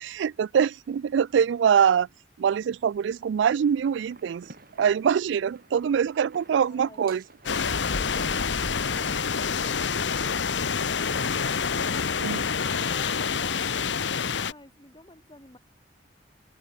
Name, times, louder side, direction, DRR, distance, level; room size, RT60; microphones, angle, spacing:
voice 1, 0.0-2.1 2.4-4.5 4.8-7.2 12.2-12.4, right 7 dB, 75° right, 0.3 m, -24 dB
sound 1, 3.4-9.6, right 3 dB, 50° right, 5.0 m, -53 dB
voice 2, 6.4-7.0 12.8-15.6, left 1 dB, 25° left, 5.2 m, -50 dB
sound 2, 7.5-14.5, left 6 dB, 75° left, 1.0 m, -27 dB
open air
head